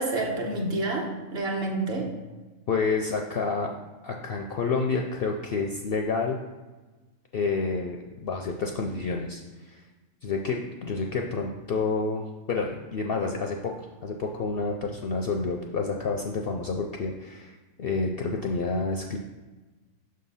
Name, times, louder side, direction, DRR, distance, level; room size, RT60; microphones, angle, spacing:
voice 1, 0.0-2.1, right 2 dB, 50° right, -1 dB, 1.2 m, -28 dB
voice 2, 2.7-3.7 4.0-6.4 7.3-9.8 10.2-19.2, left 4 dB, 60° left, 2 dB, 0.6 m, -29 dB
6.4 x 3.8 x 5.5 m, 1.2 s
omnidirectional pair, 1.4 m